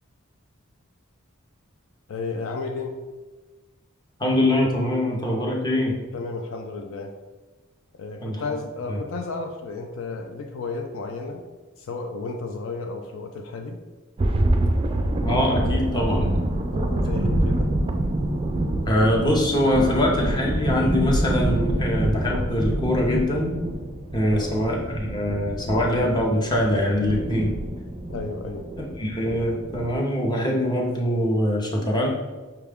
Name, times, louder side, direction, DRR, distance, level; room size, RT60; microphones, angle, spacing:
voice 1, 2.1-2.9 6.1-7.1 7.9-11.4 11.8-13.8 16.0-16.2 16.7-17.7 24.3-24.5 28.1-28.7, left 3 dB, 65° left, 4 dB, 0.4 m, -33 dB
voice 2, 4.2-5.9 8.2-8.4 8.9-9.0 15.2-16.3 18.9-23.5 24.1-27.5 28.8-32.1, left 1 dB, 20° left, -1 dB, 0.7 m, -23 dB
sound 1, 14.2-30.0, right 1 dB, 25° right, 0.3 m, -26 dB
5.8 x 2.3 x 3.5 m, 1.3 s
head